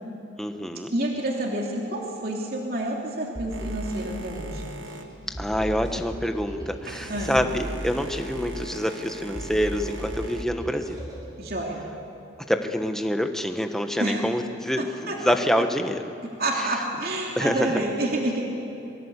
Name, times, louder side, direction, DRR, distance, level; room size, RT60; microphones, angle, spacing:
voice 1, 0.4-0.9 5.4-11.0 12.5-16.0 17.4-17.8, equal, ahead, 5 dB, 1.3 m, -26 dB
voice 2, 0.9-4.6 6.9-7.3 11.4-11.8 14.0-14.2 14.8-15.2 16.2-18.5, right 1 dB, 50° right, -1 dB, 3.0 m, -29 dB
sound 1, 3.3-11.3, equal, 20° right, 7.0 m, -37 dB
Boat Water vehicle, 3.5-10.4, right 1 dB, 90° right, 1.7 m, -42 dB
26.5 x 23.5 x 8.3 m, 2.8 s
head